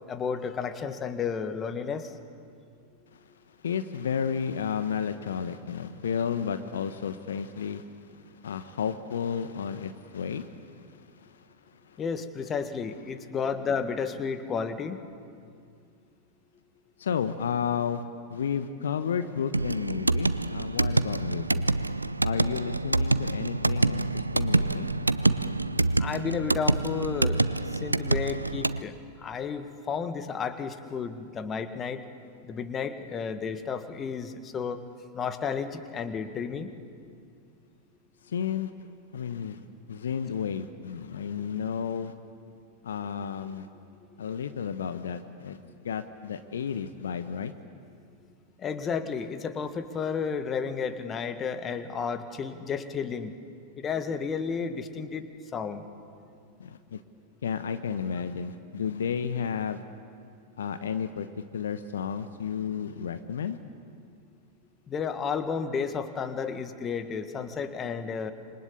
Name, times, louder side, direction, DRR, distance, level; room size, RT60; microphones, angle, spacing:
voice 1, 0.1-2.1 12.0-15.0 26.0-27.4 27.8-32.0 32.4-34.8 35.1-36.7 48.6-53.3 53.8-55.3 55.5-55.9 64.9-68.3, left 6 dB, 25° left, 9 dB, 1.7 m, -32 dB
voice 2, 3.6-11.4 11.9-12.0 17.0-18.0 18.3-21.6 22.2-24.9 38.2-38.7 39.1-42.1 42.8-43.7 44.2-45.6 45.8-47.5 56.6-57.0 57.4-59.8 60.6-63.6, left 7 dB, 65° left, 10 dB, 1.1 m, -32 dB
sound 1, 19.5-28.8, right 2 dB, 85° right, 0.6 m, -26 dB
27.5 x 25.0 x 8.6 m, 2.3 s
figure-of-eight pair, 90°, 0 cm